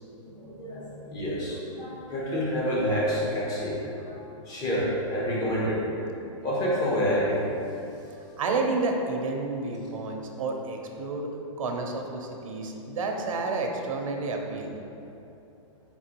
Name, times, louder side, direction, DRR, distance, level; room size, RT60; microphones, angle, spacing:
voice 1, 0.2-5.8 6.4-7.5, equal, 20° left, -5 dB, 0.8 m, -28 dB
voice 2, 8.4-11.3 11.6-14.7, right 3 dB, 90° right, 2 dB, 0.6 m, -30 dB
4.5 x 3.7 x 2.9 m, 2.8 s
hypercardioid pair, 155°, 17 cm